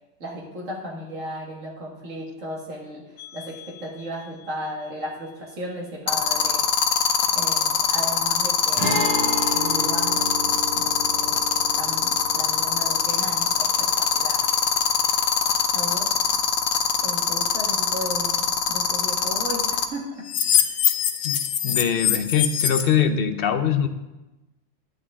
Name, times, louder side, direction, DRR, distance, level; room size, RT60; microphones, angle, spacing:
voice 1, 0.2-6.6 7.3-9.0 9.5-10.4 10.8-14.5 15.7-16.1 17.0-20.1, equal, 80° right, -2 dB, 2.3 m, -35 dB
sound 1, 3.2-3.5 6.1-19.8 20.3-22.8, left 8 dB, 90° left, 1.1 m, -21 dB
Guitar, 8.8-16.4 16.6-16.7 18.8-18.9, right 1 dB, 40° right, 2.3 m, -32 dB
voice 2, 21.2-23.9, left 8 dB, 55° left, 9 dB, 0.8 m, -23 dB
10.5 x 8.3 x 3.7 m, 1.0 s
omnidirectional pair, 1.3 m